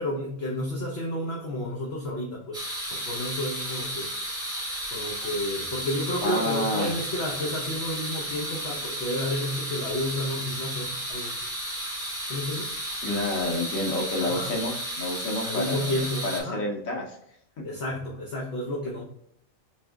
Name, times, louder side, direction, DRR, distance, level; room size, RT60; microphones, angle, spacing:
voice 1, 0.0-2.6 2.9-4.1 4.9-11.3 12.3-12.7 14.2-14.5 15.4-16.6 17.6-19.0, left 1 dB, 55° left, -2 dB, 0.9 m, -31 dB
sound 1, 2.5-16.4, equal, 5° right, 0.8 m, -33 dB
voice 2, 6.2-7.0 13.0-17.2 17.6-17.7, left 1 dB, 90° left, 0 dB, 1.3 m, -29 dB
3.4 x 3.1 x 3.4 m, 0.70 s
omnidirectional pair, 1.4 m